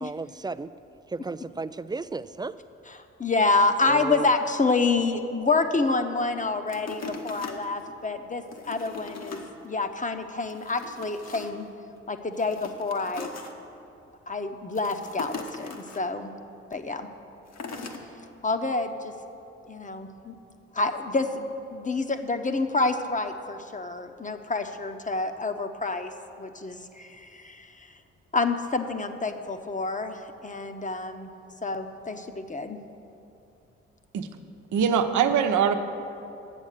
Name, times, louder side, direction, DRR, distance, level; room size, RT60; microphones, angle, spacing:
voice 1, 0.0-0.7 1.1-2.6 3.9-4.3, right 3 dB, 15° right, 14 dB, 0.4 m, -34 dB
voice 2, 3.2-11.7 12.1-13.3 14.3-16.3 16.7-17.1 18.4-19.1 19.7-20.3 20.7-26.1 26.4-27.9 28.3-31.3 31.6-32.8, left 3 dB, 25° left, 7 dB, 1.0 m, -28 dB
sound 1, 6.7-8.0 8.4-9.5 9.9-10.0 10.4-11.7 12.3-13.5 14.7-16.0 17.5-18.0 18.6-18.7, left 4 dB, 55° left, 1.4 m, -40 dB
voice 3, 34.7-35.7, right 7 dB, 65° right, 7 dB, 0.9 m, -22 dB
10.5 x 8.2 x 6.6 m, 2.7 s
hypercardioid pair, 45°, 32 cm